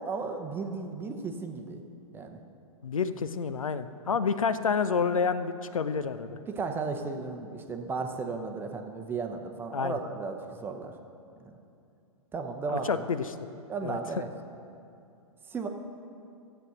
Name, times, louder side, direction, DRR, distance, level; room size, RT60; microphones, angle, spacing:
voice 1, 0.0-1.8 2.1-2.4 6.5-11.0 11.4-11.6 12.3-12.9 13.7-14.3 15.5-15.7, right 4 dB, 10° right, 5 dB, 0.8 m, -35 dB
voice 2, 2.8-6.4 9.7-10.0 12.7-13.4 13.8-14.0, left 5 dB, 70° left, 12 dB, 0.6 m, -29 dB
13.5 x 8.0 x 6.0 m, 2.6 s
figure-of-eight pair, 110°, 18 cm